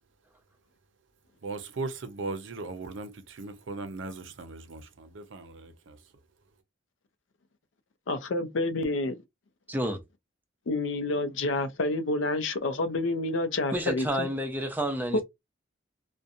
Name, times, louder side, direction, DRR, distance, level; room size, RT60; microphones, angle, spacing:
voice 1, 1.4-6.0, right 3 dB, 75° right, 0.5 m, -38 dB
voice 2, 8.1-9.2 10.7-14.3 15.1-15.2, left 2 dB, 75° left, 0.5 m, -28 dB
voice 3, 9.7-10.0 13.7-15.2, equal, 10° right, 0.5 m, -30 dB
2.7 x 2.1 x 2.5 m
head